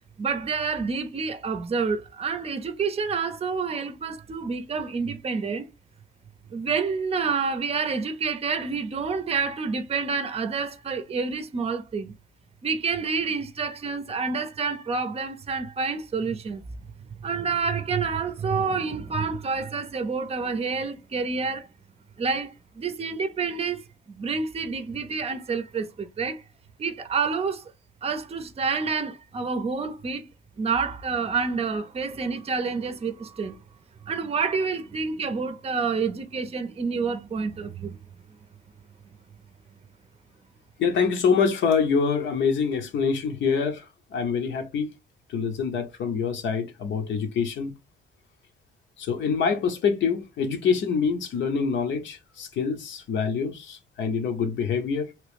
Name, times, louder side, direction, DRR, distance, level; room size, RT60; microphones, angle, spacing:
voice 1, 0.2-5.7 6.5-12.1 12.6-16.6 17.0-21.7 22.2-26.4 26.8-27.7 28.0-30.3 30.6-33.6 34.0-38.0, right 5 dB, 30° right, 0.6 m, -28 dB
voice 2, 40.8-43.8 44.1-44.9 45.3-47.7 49.0-55.1, left 6 dB, 65° left, 0.9 m, -25 dB
3.0 x 2.9 x 3.4 m
cardioid pair, 90°, 20 cm